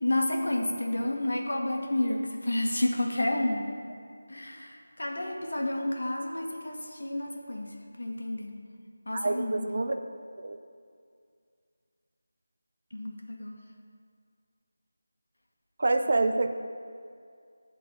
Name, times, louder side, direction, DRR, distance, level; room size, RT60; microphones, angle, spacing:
voice 1, 0.0-3.7 4.3-8.6 9.1-9.8 12.9-13.5, left 1 dB, 75° left, 1 dB, 1.4 m, -30 dB
voice 2, 9.1-10.0 10.4-10.6 15.8-16.5, right 2 dB, 35° right, 6 dB, 0.4 m, -27 dB
10.5 x 4.0 x 7.4 m, 2.3 s
figure-of-eight pair, 180°, 0 cm